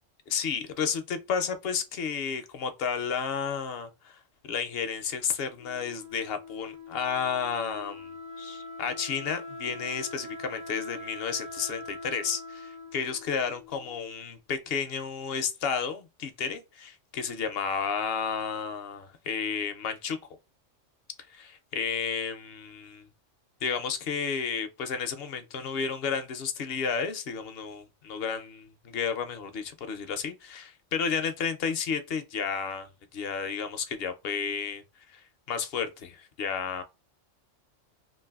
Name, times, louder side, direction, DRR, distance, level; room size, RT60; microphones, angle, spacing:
voice 1, 0.3-8.1 8.4-20.2 21.3-23.0 23.6-34.8 35.1-36.8, left 6 dB, 65° left, 0.7 m, -32 dB
Wind instrument woodwind instrument, 5.6-14.3, left 2 dB, 65° right, 1.2 m, -43 dB
3.2 x 2.5 x 2.3 m
omnidirectional pair, 1.3 m